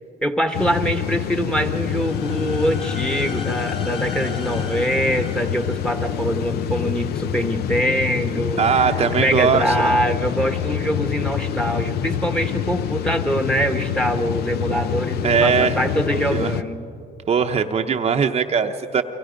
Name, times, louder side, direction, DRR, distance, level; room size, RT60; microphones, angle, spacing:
voice 1, 0.2-16.8, equal, 5° left, 7 dB, 1.3 m, -24 dB
sound 1, 0.5-16.6, left 9 dB, 70° left, 0.8 m, -26 dB
sound 2, 1.8-6.7, left 4 dB, 30° left, 2.7 m, -37 dB
voice 2, 8.6-10.0 14.7-14.9 15.2-15.8 16.1-16.6 17.3-19.0, right 6 dB, 35° right, 5 dB, 0.8 m, -20 dB
30.0 x 24.5 x 5.2 m, 2.6 s
cardioid pair, 110°, 17 cm